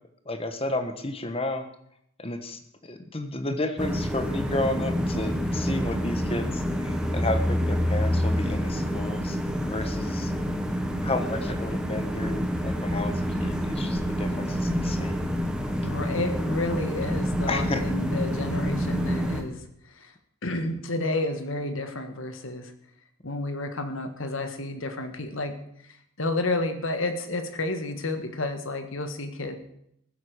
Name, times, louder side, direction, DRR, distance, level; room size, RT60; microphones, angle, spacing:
voice 1, 0.2-1.7 2.2-10.3 11.0-15.3 15.7-16.0 17.5-17.8, left 2 dB, 25° left, 8 dB, 1.2 m, -32 dB
sound 1, 3.8-19.4, equal, 5° right, 1.2 m, -27 dB
voice 2, 15.8-19.6 20.0-20.1 20.4-22.7 23.2-25.6 26.2-29.6, left 2 dB, 60° left, 8 dB, 1.6 m, -30 dB
15.5 x 8.0 x 6.5 m, 0.74 s
head